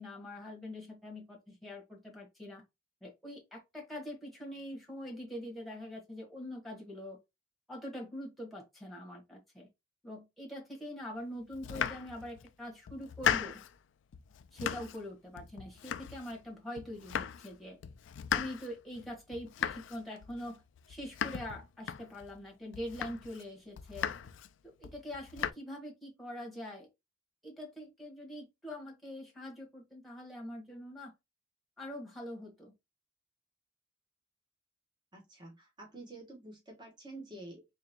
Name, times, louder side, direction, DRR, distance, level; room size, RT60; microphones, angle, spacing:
voice 1, 0.0-2.6 3.0-7.2 7.7-9.7 10.0-13.6 14.5-17.8 18.3-20.6 20.9-24.1 24.6-26.9 27.4-31.1 31.8-32.7, left 1 dB, ahead, 1.4 m, -44 dB
Domestic sounds home sounds, 11.5-12.5 12.9-13.8 14.1-15.1 15.4-16.5 16.8-17.5 17.8-22.4 22.7-23.4 23.8-24.5 24.8-25.5, left 8 dB, 85° left, 0.4 m, -37 dB
voice 2, 35.1-37.7, right 2 dB, 25° right, 1.3 m, -49 dB
3.9 x 3.2 x 2.9 m
head